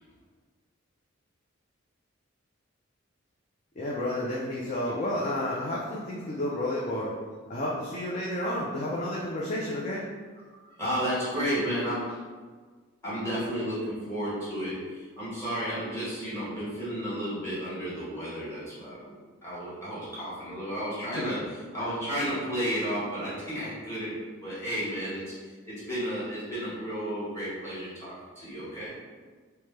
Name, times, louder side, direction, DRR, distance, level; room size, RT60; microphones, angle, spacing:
voice 1, 3.8-7.1 7.5-10.1 21.1-21.3, left 1 dB, 35° left, -5 dB, 0.4 m, -31 dB
voice 2, 10.6-12.2 13.0-19.2 19.4-24.1 24.4-28.9, equal, 15° left, -11 dB, 1.2 m, -32 dB
3.0 x 2.1 x 3.2 m, 1.5 s
head